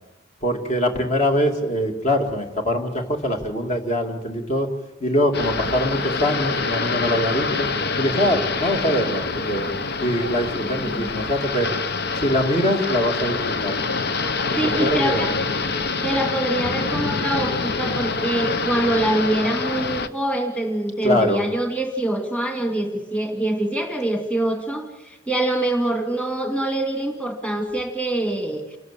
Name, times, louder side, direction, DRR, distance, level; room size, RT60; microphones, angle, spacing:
voice 1, 0.4-4.7 5.0-7.7 8.0-9.7 10.0-11.7 12.2-13.8 14.5-15.3 21.0-21.4, equal, 40° left, 3 dB, 2.6 m, -23 dB
sound 1, 5.3-20.1, left 4 dB, 60° left, 1.0 m, -26 dB
voice 2, 10.8-11.1 14.6-15.3 16.0-28.8, right 1 dB, 5° left, 4 dB, 2.3 m, -24 dB
28.5 x 13.5 x 8.5 m, 1.0 s
head